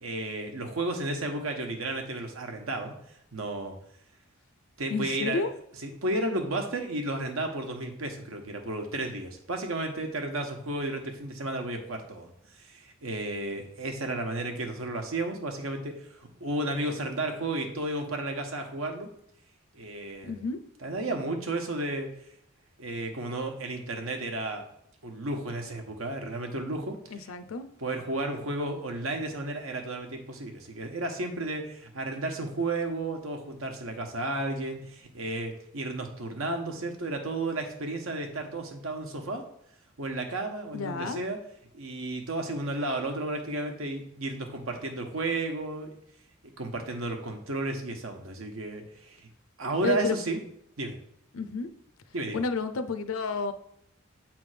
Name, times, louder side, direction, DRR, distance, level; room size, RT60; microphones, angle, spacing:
voice 1, 0.0-2.9 3.3-3.8 4.8-5.4 5.8-12.3 12.6-19.1 19.7-20.4 20.8-22.1 22.8-24.6 25.0-27.0 27.8-39.4 40.0-41.4 41.7-45.9 46.4-49.3 49.6-50.4 50.8-51.0 52.1-52.4, right 2 dB, 85° right, 4 dB, 1.1 m, -33 dB
voice 2, 4.9-5.5 20.2-20.6 27.1-27.7 40.7-41.2 49.8-50.2 51.3-51.7 52.3-53.5, left 4 dB, 85° left, 11 dB, 0.6 m, -30 dB
7.6 x 3.5 x 4.9 m, 0.74 s
head